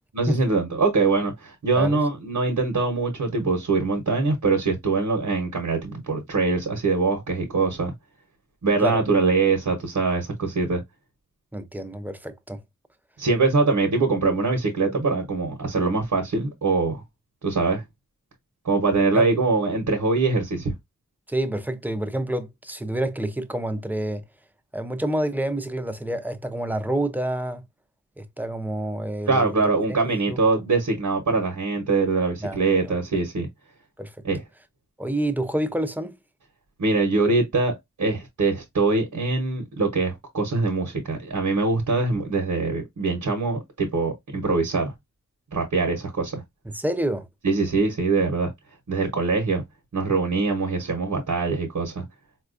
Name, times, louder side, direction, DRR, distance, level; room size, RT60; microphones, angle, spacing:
voice 1, 0.1-7.9 8.6-10.8 13.2-17.0 17.4-17.8 18.6-20.7 29.3-33.5 34.2-34.4 36.8-44.9 45.5-46.4 47.4-48.5 48.9-49.6 49.9-52.0, right 3 dB, 75° right, 0.9 m, -23 dB
voice 2, 11.5-12.6 19.1-19.3 21.3-24.2 24.7-27.6 28.2-29.5 32.4-32.6 34.0-34.1 35.0-36.1 46.7-47.3, right 1 dB, 5° right, 0.5 m, -28 dB
4.2 x 2.3 x 2.4 m
wide cardioid pair, 80°, 30 cm